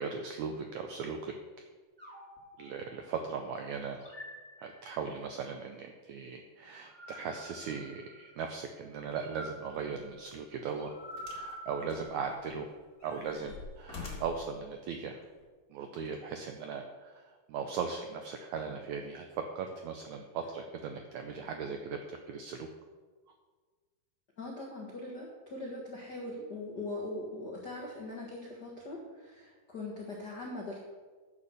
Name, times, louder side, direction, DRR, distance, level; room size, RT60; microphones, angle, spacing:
voice 1, 0.0-1.3 2.6-4.0 4.6-10.9 11.3-12.7 13.0-15.2 15.7-22.7, right 5 dB, 85° right, 5 dB, 1.6 m, -38 dB
sound 1, 2.0-3.3 4.0-5.3 6.7-8.5 9.1-12.6, equal, 5° right, 2.5 m, -48 dB
sound 2, 11.2-11.5 11.9-12.6 13.0-14.5 15.4-15.5, left 4 dB, 30° left, 1.9 m, -46 dB
voice 2, 24.4-30.8, left 2 dB, 65° left, -2 dB, 1.0 m, -41 dB
10.0 x 6.9 x 7.0 m, 1.4 s
omnidirectional pair, 4.2 m